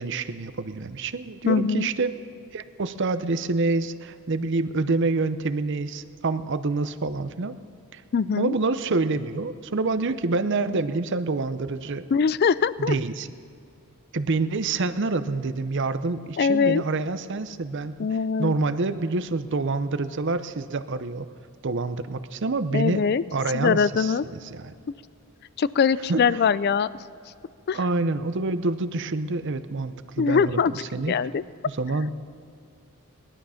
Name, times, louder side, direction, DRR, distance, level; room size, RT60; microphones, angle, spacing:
voice 1, 0.0-2.2 2.5-7.6 7.9-8.0 8.4-12.1 12.8-13.3 14.1-17.9 18.4-21.3 21.6-23.0 23.3-24.1 24.5-24.7 26.1-26.5 27.7-31.1 31.6-32.1, right 3 dB, 55° right, 12 dB, 0.7 m, -27 dB
voice 2, 1.5-1.9 8.1-8.5 12.1-13.0 16.4-16.8 18.0-18.5 22.7-23.2 23.5-24.2 25.6-26.9 27.7-27.8 30.2-30.7 31.1-31.4, left 6 dB, 45° left, 17 dB, 0.4 m, -22 dB
19.5 x 12.0 x 5.7 m, 2.4 s
head